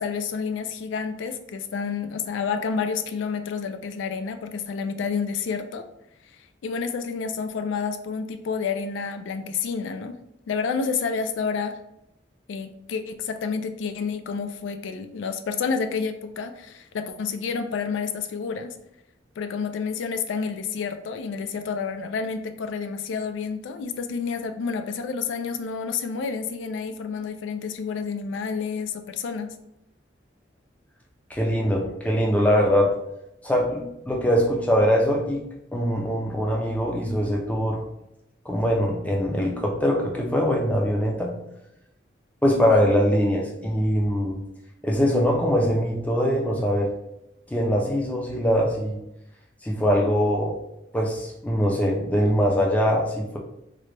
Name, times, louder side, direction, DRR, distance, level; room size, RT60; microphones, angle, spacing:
voice 1, 0.0-5.9 6.3-6.4 6.6-10.2 10.5-11.8 12.5-18.8 19.4-29.5 42.7-42.9, left 5 dB, 80° left, 8 dB, 0.3 m, -29 dB
voice 2, 31.3-33.0 33.4-35.4 35.7-37.8 38.5-41.4 42.4-44.4 44.8-46.9 47.5-49.0 49.6-50.6 50.9-53.4, equal, 10° left, 0 dB, 0.4 m, -22 dB
3.7 x 2.2 x 3.2 m, 0.84 s
head